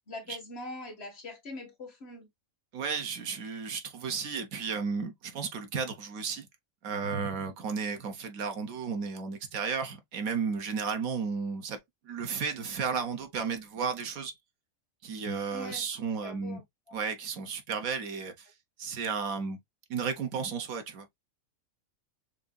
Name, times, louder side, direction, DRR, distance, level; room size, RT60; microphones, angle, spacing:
voice 1, 0.1-2.3 15.5-15.9 16.2-17.0, left 2 dB, 50° left, 1.7 m, -43 dB
voice 2, 2.7-6.5 6.8-14.3 15.0-16.6 16.9-18.5 18.8-19.6 19.9-21.1, right 5 dB, 85° right, 1.4 m, -33 dB
6.3 x 2.7 x 2.3 m
omnidirectional pair, 1.4 m